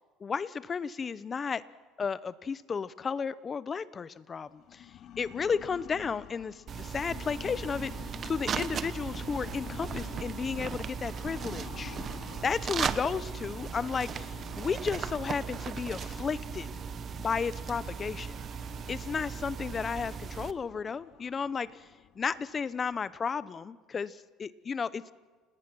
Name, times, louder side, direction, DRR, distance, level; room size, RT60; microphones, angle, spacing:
voice 1, 0.2-1.6 2.0-4.9 5.2-7.9 8.2-12.0 12.4-16.7 17.2-18.4 18.9-21.9 22.2-25.1, left 6 dB, 25° left, 17 dB, 0.7 m, -33 dB
sound 1, 4.5-23.2, left 11 dB, 50° left, 0.9 m, -49 dB
sound 2, 6.7-20.5, right 7 dB, 35° right, 1.0 m, -37 dB
sound 3, 7.6-18.9, right 9 dB, 70° right, 2.2 m, -62 dB
29.5 x 18.5 x 6.2 m, 1.4 s
cardioid pair, 135°, 0 cm